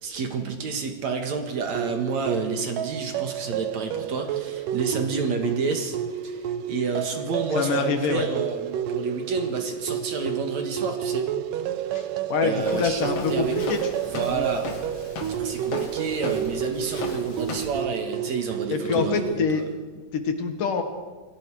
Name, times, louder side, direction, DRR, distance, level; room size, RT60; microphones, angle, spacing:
voice 1, 0.0-6.0 6.2-11.3 12.4-13.6 14.1-14.7 15.4-19.6, right 4 dB, 60° right, 4 dB, 2.9 m, -29 dB
sound 1, 1.7-19.3, right 9 dB, 75° right, 2.4 m, -30 dB
voice 2, 7.5-8.3 11.9-13.8 14.3-14.5 18.7-19.6 20.1-20.8, left 5 dB, 70° left, 6 dB, 3.3 m, -25 dB
Walk footsteps, 12.6-17.8, left 4 dB, 50° left, 2.7 m, -37 dB
28.0 x 19.0 x 4.9 m, 1.4 s
omnidirectional pair, 4.0 m